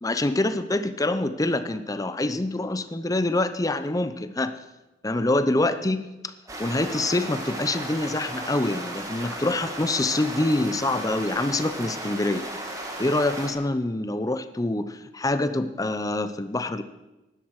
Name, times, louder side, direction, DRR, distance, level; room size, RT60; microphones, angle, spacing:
voice 1, 0.0-4.5 5.0-6.3 6.6-12.5 13.0-16.8, left 2 dB, 20° left, 11 dB, 0.6 m, -25 dB
sound 1, 6.5-13.5, right 1 dB, 20° right, 1.9 m, -35 dB
16.0 x 11.5 x 4.8 m, 1.0 s
head